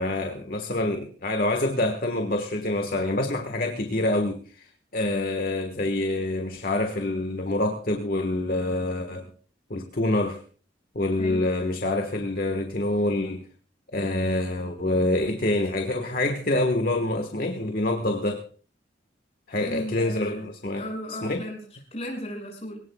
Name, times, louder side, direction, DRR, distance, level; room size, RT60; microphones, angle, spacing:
voice 1, 0.0-9.3 9.7-10.4 10.9-13.4 13.9-18.4 19.5-20.8 21.2-21.4, left 2 dB, 50° left, 1.5 m, -26 dB
voice 2, 19.6-20.4 20.7-22.8, equal, 35° left, 6.1 m, -35 dB
23.5 x 18.0 x 2.3 m
head